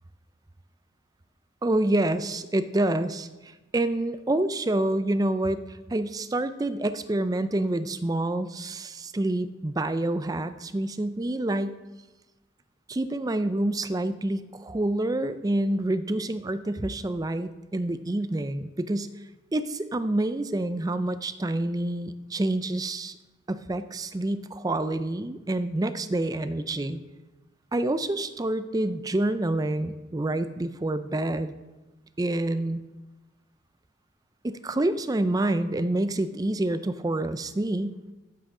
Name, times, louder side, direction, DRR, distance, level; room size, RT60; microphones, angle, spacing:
voice 1, 1.6-11.7 12.9-19.1 19.5-23.2 23.5-27.0 27.7-31.5 32.2-32.8 34.4-38.0, right 1 dB, 20° right, 11 dB, 0.4 m, -27 dB
14.5 x 7.6 x 3.8 m, 1.1 s
head